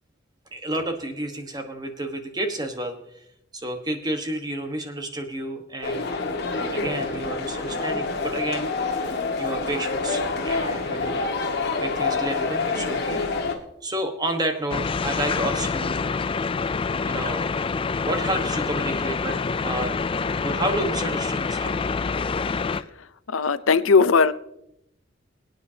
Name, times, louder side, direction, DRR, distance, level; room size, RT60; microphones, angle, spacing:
voice 1, 0.5-3.0 3.5-6.2 6.7-8.9 9.4-11.3 11.8-13.3 13.8-16.0 17.0-17.5 18.0-21.9, right 1 dB, 20° right, 5 dB, 1.3 m, -30 dB
sound 1, 5.8-13.5, left 3 dB, 55° left, 1.7 m, -27 dB
sound 2, 14.7-22.8, left 4 dB, 25° left, 0.3 m, -26 dB
voice 2, 23.3-24.3, left 5 dB, 75° left, 14 dB, 0.6 m, -18 dB
23.0 x 9.3 x 2.8 m, 0.79 s
head